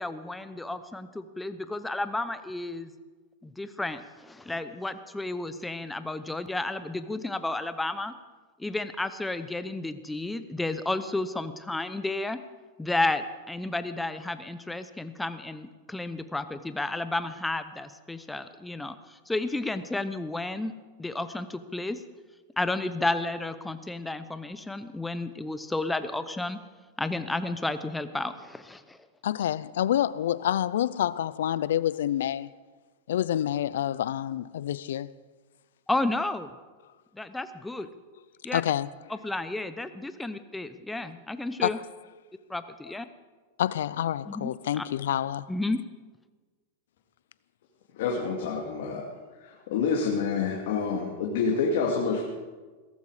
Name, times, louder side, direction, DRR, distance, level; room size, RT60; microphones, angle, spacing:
voice 1, 0.0-2.9 3.4-8.1 8.6-12.4 12.8-20.7 21.0-22.0 22.6-26.6 27.0-29.0 35.9-36.5 37.1-37.9 38.4-38.6 39.1-41.8 42.5-43.1 44.3-44.9 45.5-45.8, left 2 dB, 5° left, 0.8 m, -32 dB
voice 2, 29.2-32.5 33.1-35.1 38.5-38.9 41.6-41.7 43.6-45.5, left 11 dB, 85° left, 0.5 m, -27 dB
voice 3, 47.9-49.0 49.4-52.2, left 5 dB, 65° left, 2.4 m, -27 dB
17.0 x 14.5 x 4.9 m
supercardioid pair, 150°, 0 cm